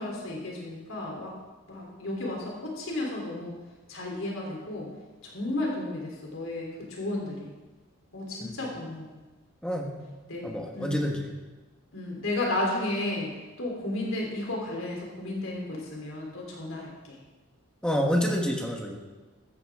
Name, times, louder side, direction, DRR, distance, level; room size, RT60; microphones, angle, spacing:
voice 1, 0.0-1.4 1.7-3.5 3.9-4.9 5.2-7.5 8.1-9.1 10.3-10.5 10.7-10.9 11.9-13.3 13.6-17.2, left 2 dB, 75° left, -2 dB, 3.5 m, -33 dB
voice 2, 9.6-10.0 10.4-11.3 17.8-19.0, equal, 5° left, 1 dB, 1.3 m, -28 dB
15.5 x 14.0 x 3.7 m, 1.2 s
head